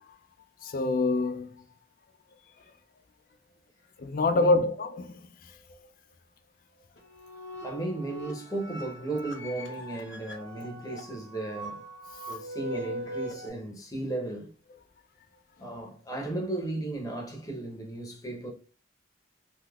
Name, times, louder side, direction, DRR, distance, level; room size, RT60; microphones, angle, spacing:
voice 1, 0.6-1.6 4.0-5.2, left 2 dB, 50° left, 0.4 m, -26 dB
voice 2, 4.3-4.7 7.6-11.8 12.3-14.5 15.6-18.5, right 2 dB, 20° left, 0.8 m, -35 dB
sound 1, 7.0-13.5, equal, 75° left, 0.8 m, -40 dB
3.4 x 2.8 x 2.3 m
head